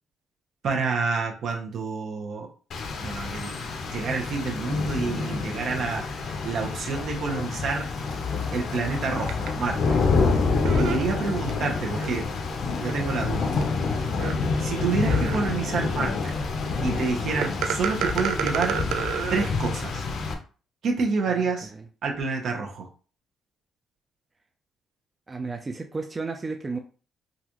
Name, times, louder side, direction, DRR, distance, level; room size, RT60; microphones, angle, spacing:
voice 1, 0.6-2.5 3.0-3.6 3.8-7.9 8.5-10.0 10.8-12.3 12.8-13.5 14.6-16.3 16.8-18.8 19.3-20.0 20.8-21.7 22.0-22.9, right 4 dB, 65° right, 0.9 m, -28 dB
Rain, 2.7-20.3, left 4 dB, 65° left, 0.7 m, -27 dB
sound 1, 9.3-9.5 10.6-11.5 12.0-12.1 12.9-13.0 13.6-13.7 14.2-14.3 15.1-15.6 17.4-19.5, right 7 dB, 85° right, 0.4 m, -28 dB
voice 2, 21.3-21.9 25.3-26.8, right 3 dB, 25° right, 0.5 m, -33 dB
3.9 x 2.5 x 3.0 m
cardioid pair, 90°, 0 cm